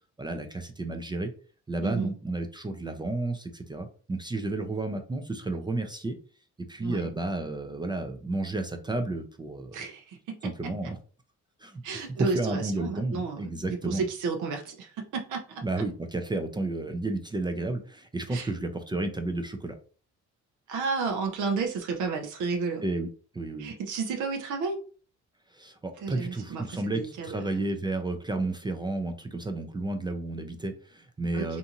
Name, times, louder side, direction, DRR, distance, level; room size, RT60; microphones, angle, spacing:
voice 1, 0.2-1.3 1.7-6.2 6.7-9.9 10.4-11.0 11.6-11.8 12.2-14.0 15.6-19.7 22.8-23.1 23.3-23.7 25.5-31.6, right 2 dB, 15° right, 6 dB, 0.4 m, -32 dB
voice 2, 1.8-2.1 6.8-7.1 9.7-10.5 10.8-10.9 11.8-15.6 18.3-18.5 20.7-22.8 23.6-24.8 26.0-27.6 31.3-31.6, right 4 dB, 80° right, 4 dB, 0.6 m, -32 dB
2.6 x 2.5 x 2.8 m, 0.41 s
cardioid pair, 90°, 30 cm